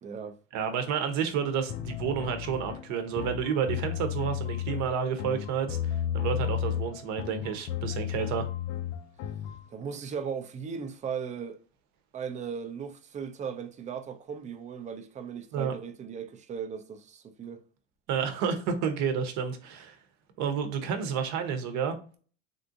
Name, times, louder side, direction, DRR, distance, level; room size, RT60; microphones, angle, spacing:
voice 1, 0.0-0.4 9.7-11.6 12.1-17.6, right 6 dB, 25° right, 0.4 m, -37 dB
voice 2, 0.5-8.5 15.5-15.7 18.1-20.0 20.4-22.0, right 7 dB, 60° right, 0.8 m, -30 dB
sound 1, 1.7-9.6, left 10 dB, 55° left, 0.4 m, -33 dB
3.5 x 2.5 x 2.6 m
supercardioid pair, 115°, 33 cm